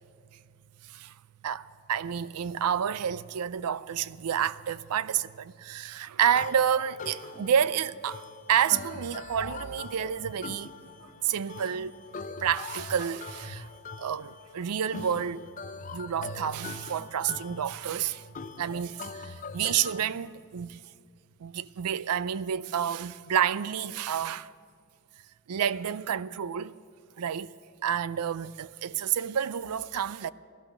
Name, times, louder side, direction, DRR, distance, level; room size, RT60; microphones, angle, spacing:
voice 1, 1.4-8.2 8.5-10.7 11.2-11.9 12.4-13.7 14.0-15.4 15.9-18.2 18.6-20.8 21.4-24.5 25.5-26.8 27.2-27.5 27.8-30.3, right 8 dB, 85° right, 0.4 m, -29 dB
sound 1, 6.3-20.1, left 4 dB, 35° left, 0.5 m, -42 dB
16.5 x 12.0 x 6.6 m
head